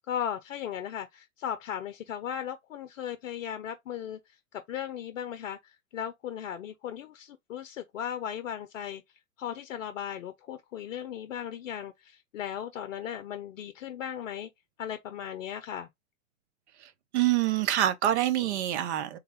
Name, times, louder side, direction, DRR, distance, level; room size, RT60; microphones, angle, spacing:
voice 1, 0.0-9.0 9.4-14.5 14.8-15.9, left 9 dB, 65° left, 0.6 m, -37 dB
voice 2, 16.8-19.2, right 12 dB, 55° right, 0.7 m, -26 dB
3.4 x 2.3 x 3.2 m
hypercardioid pair, 105°, 41 cm